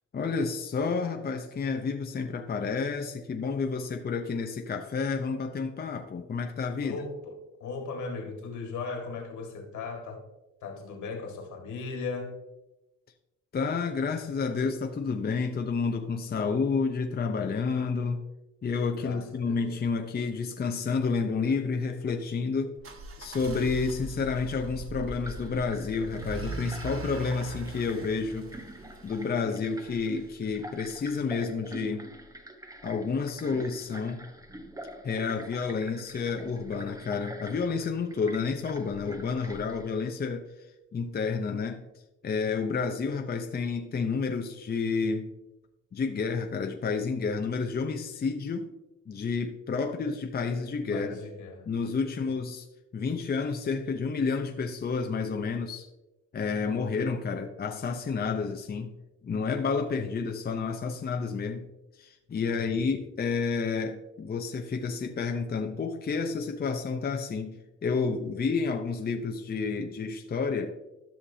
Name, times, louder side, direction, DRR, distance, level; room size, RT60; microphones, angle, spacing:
voice 1, 0.1-7.0 13.5-18.2 18.6-22.7 23.2-28.5 29.0-32.1 32.8-34.2 35.0-40.5 40.9-41.8 42.2-45.3 45.9-48.7 49.1-51.2 51.6-52.7 52.9-55.9 56.3-58.9 59.2-61.7 62.0-70.7, left 5 dB, 30° left, 0.7 m, -30 dB
voice 2, 6.8-10.3 10.6-12.4 19.0-19.7 50.9-51.7 52.2-52.3 62.5-62.9, left 4 dB, 75° left, 2.0 m, -38 dB
sound 1, 22.8-29.7, right 1 dB, 45° right, 1.4 m, -40 dB
sound 2, 25.2-39.9, right 1 dB, 10° right, 1.0 m, -46 dB
13.0 x 5.8 x 2.8 m
cardioid pair, 90°, 30 cm